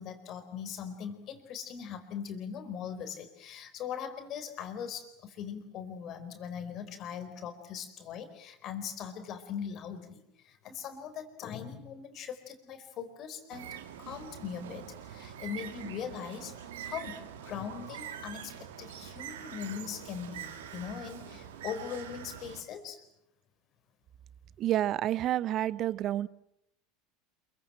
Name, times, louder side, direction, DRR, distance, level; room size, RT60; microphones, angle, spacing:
voice 1, 0.0-16.5 16.8-23.0, left 8 dB, 45° left, 8 dB, 4.5 m, -40 dB
Bird, 13.5-22.6, right 9 dB, 70° right, 2.4 m, -44 dB
voice 2, 24.6-26.3, right 13 dB, 45° right, 19 dB, 0.9 m, -29 dB
28.0 x 23.0 x 7.7 m, 0.80 s
figure-of-eight pair, 80°, 0 cm